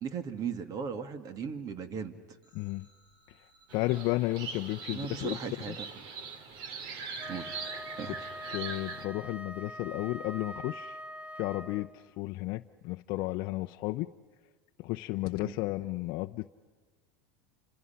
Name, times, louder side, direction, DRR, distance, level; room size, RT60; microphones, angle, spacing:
voice 1, 0.0-2.1 4.9-5.9 7.3-7.5 8.0-8.2 15.4-15.5, right 6 dB, 35° right, 10 dB, 2.1 m, -37 dB
sound 1, 2.4-7.3, right 1 dB, 65° right, 7.2 m, -63 dB
voice 2, 2.5-2.9 3.4-3.5 3.7-5.8 8.1-8.2 8.5-11.0 11.4-14.1 14.8-16.5, left 19 dB, 55° left, 6 dB, 0.7 m, -33 dB
sound 2, 3.7-9.1, right 5 dB, 50° right, 2.6 m, -41 dB
Wind instrument woodwind instrument, 7.2-12.1, equal, 15° right, 1.4 m, -44 dB
29.5 x 26.5 x 5.8 m, 1.5 s
supercardioid pair, 130°, 10 cm